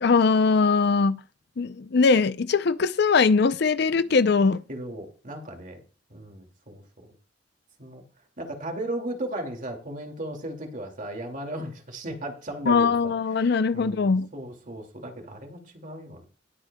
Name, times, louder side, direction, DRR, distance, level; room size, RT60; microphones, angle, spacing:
voice 1, 0.0-1.2 1.6-4.6 12.7-14.3, left 4 dB, 60° left, 0.5 m, -21 dB
voice 2, 4.7-5.8 6.1-7.1 7.8-8.0 8.4-13.5 13.7-16.2, right 1 dB, 45° right, 2.3 m, -36 dB
19.5 x 8.1 x 2.3 m
head